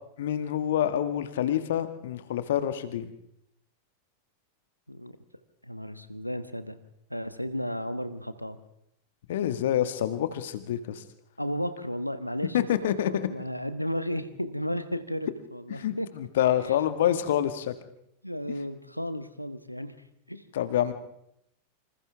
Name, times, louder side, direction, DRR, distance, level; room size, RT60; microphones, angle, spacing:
voice 1, 0.2-3.1 9.3-11.0 12.5-13.3 15.8-17.7 20.5-20.9, left 11 dB, 60° left, 11 dB, 1.8 m, -27 dB
voice 2, 5.6-6.8 7.1-8.6 11.4-16.1 16.6-16.8 18.2-19.9 20.3-20.4, equal, 90° left, 12 dB, 1.3 m, -34 dB
27.0 x 26.5 x 3.6 m, 0.77 s
figure-of-eight pair, 90°, 0 cm